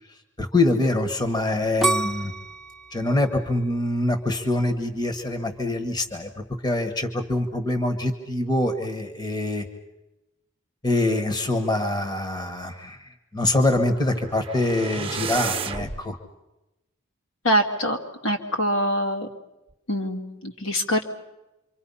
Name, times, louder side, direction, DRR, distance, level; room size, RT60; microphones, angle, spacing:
voice 1, 0.4-2.3 2.9-6.3 6.6-9.6 10.8-16.2, left 2 dB, 20° left, 7 dB, 1.5 m, -24 dB
sound 1, 1.8-4.7 5.2-5.7, right 3 dB, ahead, 1.1 m, -28 dB
sound 2, 13.8-16.0, right 5 dB, 25° right, 1.2 m, -32 dB
voice 2, 17.4-18.0 18.2-19.3 19.9-21.0, equal, 70° left, 2 dB, 2.5 m, -24 dB
27.5 x 25.0 x 5.7 m, 0.96 s
head